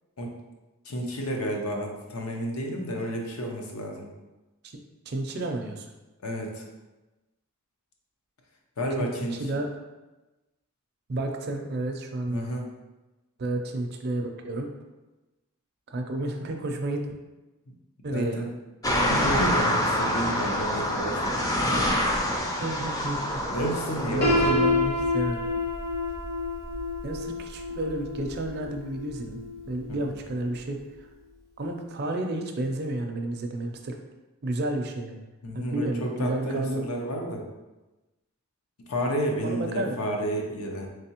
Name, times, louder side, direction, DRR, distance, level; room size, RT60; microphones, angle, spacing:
voice 1, 0.8-4.1 6.2-6.7 8.8-9.4 12.3-12.7 18.1-18.5 18.9-21.7 23.5-24.6 29.9-30.0 35.4-37.5 38.9-40.9, right 1 dB, 80° left, 1 dB, 0.7 m, -31 dB
voice 2, 5.1-5.9 9.0-9.7 11.1-12.4 13.4-14.7 15.9-17.1 18.0-18.5 22.6-23.4 24.1-25.5 27.0-29.4 29.7-31.1 31.6-34.0 34.4-35.2 35.5-36.9 39.4-39.9, right 1 dB, 45° right, 3 dB, 0.4 m, -31 dB
sound 1, 18.8-24.5, equal, 15° left, 0.4 m, -26 dB
Piano, 24.2-30.1, left 2 dB, 50° left, 0.8 m, -28 dB
3.7 x 3.3 x 2.9 m, 1.1 s
head